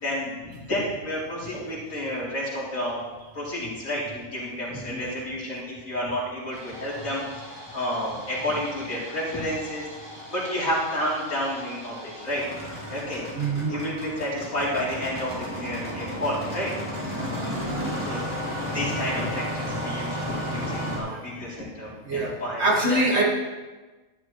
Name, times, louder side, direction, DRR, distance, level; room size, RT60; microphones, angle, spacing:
voice 1, 0.0-3.0 3.3-7.4 7.7-12.4 12.9-13.2 13.7-17.0 18.0-18.3 18.6-22.6 23.1-23.2, equal, 70° left, -8 dB, 3.9 m, -30 dB
Engine starting, 6.5-21.0, equal, 20° right, 3.0 m, -34 dB
voice 2, 13.4-13.8 17.2-17.4 21.1-21.2 22.1-23.2, right 2 dB, 50° right, -2 dB, 2.0 m, -25 dB
12.0 x 11.5 x 3.1 m, 1.2 s
omnidirectional pair, 1.4 m